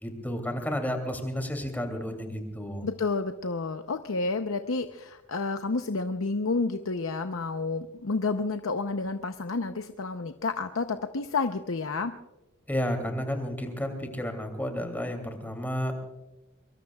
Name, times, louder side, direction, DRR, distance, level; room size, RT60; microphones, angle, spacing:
voice 1, 0.0-2.9 12.7-15.9, equal, 10° left, 4 dB, 2.7 m, -32 dB
voice 2, 2.8-12.1, left 3 dB, 80° left, 7 dB, 0.7 m, -30 dB
23.5 x 22.5 x 2.4 m, 1.1 s
head